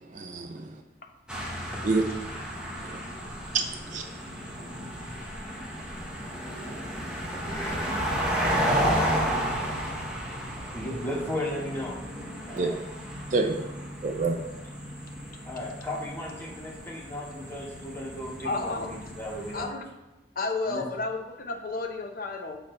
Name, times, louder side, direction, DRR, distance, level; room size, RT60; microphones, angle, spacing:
voice 1, 0.1-0.7 1.8-2.0 2.8-3.0 3.5-4.0 12.5-12.8 13.3-13.6 14.0-14.4, right 3 dB, 45° right, 4 dB, 0.5 m, -27 dB
sound 1, 1.3-19.6, equal, 5° right, 0.9 m, -33 dB
voice 2, 7.3-8.0 10.7-12.0 12.4-12.8 15.5-19.7 20.7-20.8, left 1 dB, 15° left, -3 dB, 1.3 m, -36 dB
voice 3, 18.4-19.0 19.5-19.9 20.4-22.6, left 3 dB, 55° left, 4 dB, 0.7 m, -32 dB
7.2 x 4.2 x 3.8 m, 1.1 s
head